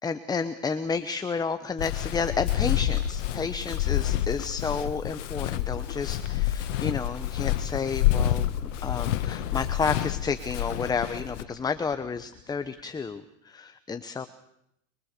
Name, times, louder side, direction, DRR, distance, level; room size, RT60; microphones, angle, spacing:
voice 1, 0.0-14.3, left 5 dB, 10° left, 10 dB, 0.9 m, -31 dB
Walk footsteps, 1.8-11.4, left 12 dB, 65° left, 1.9 m, -28 dB
sound 1, 2.8-3.2 3.6-3.9 4.3-4.6 5.0-5.4 5.7-6.1 6.8-9.7 10.4-13.2, left 12 dB, 40° left, 3.3 m, -49 dB
27.0 x 23.0 x 6.7 m, 0.77 s
hypercardioid pair, 125°, 39 cm